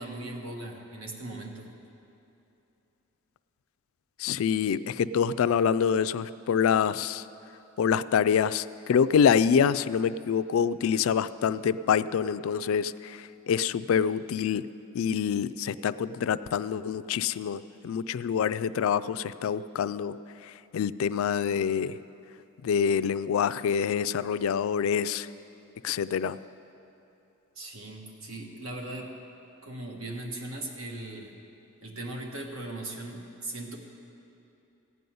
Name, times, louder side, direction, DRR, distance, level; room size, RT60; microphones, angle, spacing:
voice 1, 0.0-1.7 27.5-29.1 29.6-31.3 31.8-33.8, right 2 dB, 80° right, 1 dB, 1.5 m, -38 dB
voice 2, 4.2-7.2 7.8-14.6 14.9-22.0 22.6-25.3 25.8-26.4, left 7 dB, 75° left, 15 dB, 0.3 m, -26 dB
15.5 x 5.4 x 9.3 m, 2.9 s
head